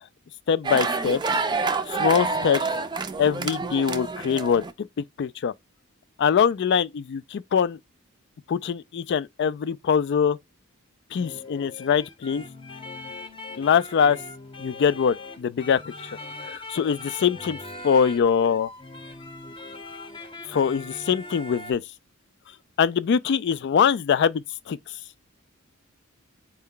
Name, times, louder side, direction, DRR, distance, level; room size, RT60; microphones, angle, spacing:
voice 1, 0.5-1.2 1.9-2.7 3.2-4.6 5.2-5.5 6.2-7.8 8.5-10.4 11.1-12.4 13.6-14.2 14.6-15.8 16.5-17.6 17.8-18.7 20.5-21.8 22.8-24.4 24.7-24.8, left 7 dB, 55° left, 0.3 m, -23 dB
sound 1, 0.6-4.7, right 4 dB, 20° right, 0.4 m, -27 dB
sound 2, 11.2-21.7, left 2 dB, 25° left, 0.7 m, -40 dB
4.4 x 2.1 x 3.7 m
head